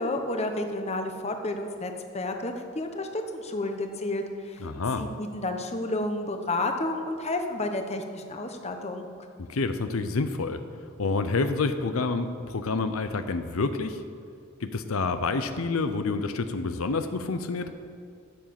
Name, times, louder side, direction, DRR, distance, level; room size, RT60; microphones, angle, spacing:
voice 1, 0.0-4.6 5.0-9.1, left 2 dB, 30° left, 5 dB, 0.9 m, -31 dB
voice 2, 4.6-5.1 9.5-10.6 11.0-14.0 14.6-17.7, left 3 dB, 85° left, 9 dB, 0.7 m, -28 dB
13.5 x 7.3 x 5.9 m, 2.3 s
head